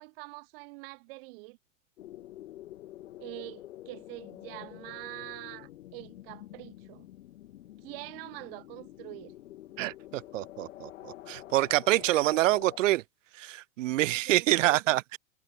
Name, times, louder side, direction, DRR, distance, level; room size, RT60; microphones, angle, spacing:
voice 1, 0.0-1.6 3.2-7.1 7.8-9.3 14.0-14.8, right 26 dB, 50° right, 1.6 m, -45 dB
sound 1, 2.0-12.8, left 14 dB, 85° left, 3.4 m, -48 dB
voice 2, 9.8-13.0 13.4-15.2, right 16 dB, 75° right, 1.2 m, -26 dB
supercardioid pair, 160°, 38 cm